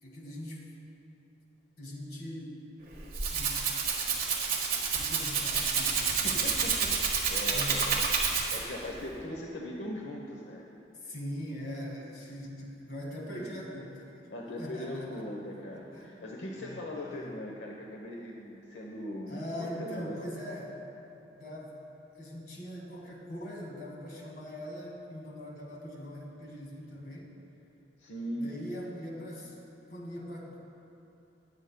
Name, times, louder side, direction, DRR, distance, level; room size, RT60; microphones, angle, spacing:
voice 1, 0.0-0.6 1.8-2.6 3.3-3.6 4.9-6.6 7.4-7.8 10.9-14.3 14.6-15.4 15.7-16.1 16.6-17.3 19.3-20.8 21.4-21.8 22.1-27.3 28.4-29.6 29.9-30.6, equal, 55° left, -2 dB, 1.9 m, -41 dB
Rattle (instrument), 2.9-8.8, right 5 dB, 50° right, 1.5 m, -29 dB
voice 2, 6.2-8.0 8.3-10.7 13.3-13.6 14.3-20.2 28.0-28.5, left 1 dB, 85° left, -1 dB, 0.9 m, -40 dB
20.5 x 8.0 x 2.2 m, 2.9 s
head